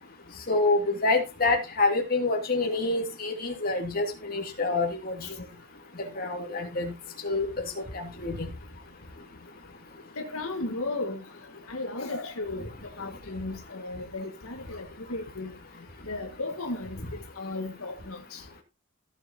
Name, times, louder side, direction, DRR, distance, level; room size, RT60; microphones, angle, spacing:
voice 1, 0.5-5.1 6.1-6.9 7.2-8.5, left 3 dB, 45° left, 2.9 m, -27 dB
voice 2, 10.2-11.2 11.7-12.7 13.0-15.5 16.1-17.0 17.4-18.4, left 2 dB, 80° left, 1.8 m, -35 dB
15.5 x 7.6 x 2.9 m
head